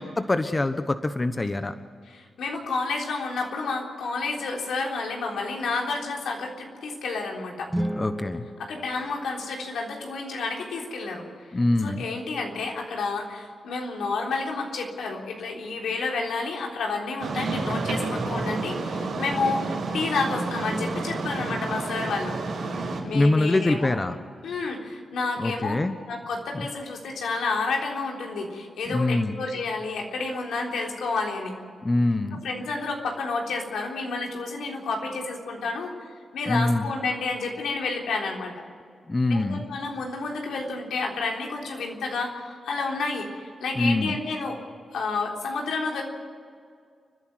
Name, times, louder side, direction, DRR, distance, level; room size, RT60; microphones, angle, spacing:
voice 1, 0.0-1.7 8.0-8.4 11.5-12.0 23.1-24.2 25.4-25.9 26.5-26.7 28.9-29.4 31.8-32.4 36.5-36.9 39.1-39.6 43.8-44.2, left 2 dB, 30° left, 9 dB, 1.1 m, -24 dB
voice 2, 2.0-7.7 8.6-11.4 11.8-22.4 23.0-24.0 24.4-25.7 26.1-31.6 32.3-35.9 36.3-38.5 39.3-44.6 44.9-46.0, left 3 dB, 90° left, 0 dB, 3.7 m, -30 dB
sound 1, 7.6-9.9, equal, 10° right, 1.5 m, -34 dB
sound 2, 17.2-23.0, right 3 dB, 85° right, 5.1 m, -30 dB
29.5 x 10.5 x 9.6 m, 2.2 s
cardioid pair, 60°, 0 cm